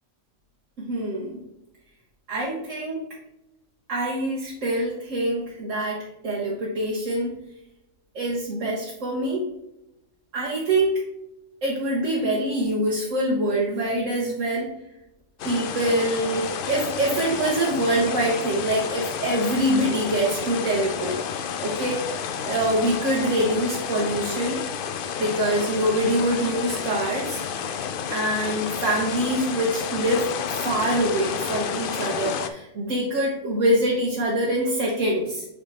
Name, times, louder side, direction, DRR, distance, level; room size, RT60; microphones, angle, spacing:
voice 1, 0.8-1.4 2.3-3.0 3.9-7.3 8.1-9.5 10.3-11.0 11.6-14.7 15.4-21.2 21.6-24.7 25.2-27.4 28.1-35.4, right 1 dB, 70° right, -3 dB, 1.5 m, -25 dB
sound 1, 15.4-32.5, left 7 dB, 60° left, 0.6 m, -31 dB
6.5 x 3.8 x 4.1 m, 0.88 s
omnidirectional pair, 1.4 m